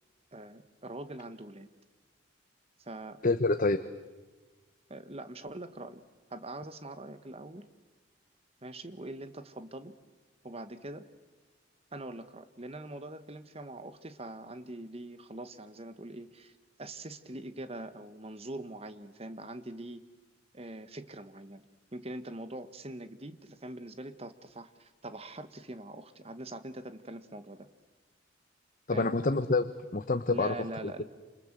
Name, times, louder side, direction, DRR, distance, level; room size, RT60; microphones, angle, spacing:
voice 1, 0.3-1.7 2.8-3.2 4.9-7.7 8.6-9.9 10.4-11.0 11.9-20.0 20.5-21.6 21.9-27.7 28.9-29.1 30.3-31.0, right 1 dB, 30° right, 11 dB, 1.4 m, -43 dB
voice 2, 3.2-3.8 28.9-30.6, left 3 dB, 45° left, 11 dB, 0.9 m, -27 dB
28.5 x 27.5 x 7.5 m, 1.3 s
head